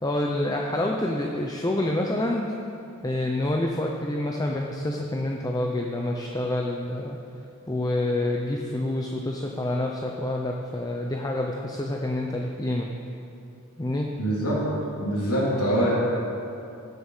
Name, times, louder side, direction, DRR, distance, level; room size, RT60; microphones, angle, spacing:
voice 1, 0.0-2.5 3.0-7.2 7.7-12.9 13.8-14.1, left 1 dB, 15° left, 1 dB, 0.7 m, -27 dB
voice 2, 14.2-14.6 15.0-15.9, right 1 dB, 85° left, -7 dB, 3.1 m, -24 dB
17.0 x 8.1 x 5.6 m, 2.7 s
head